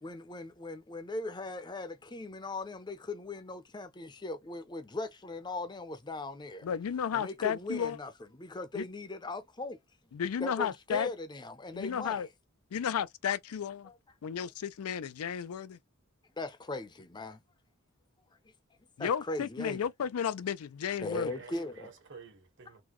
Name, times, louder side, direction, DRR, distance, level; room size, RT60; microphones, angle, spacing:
voice 1, 0.0-6.7 7.1-9.8 10.4-12.3 13.9-14.0 16.4-17.4 19.0-19.9 21.0-21.9 22.7-22.8, left 2 dB, 20° left, 0.6 m, -39 dB
voice 2, 6.6-8.0 8.7-8.8 10.1-11.1 11.7-12.3 12.7-13.9 14.2-15.8 19.0-21.3, left 8 dB, 85° left, 0.4 m, -33 dB
voice 3, 20.9-22.8, right 5 dB, 55° right, 1.4 m, -52 dB
3.8 x 2.2 x 3.0 m
head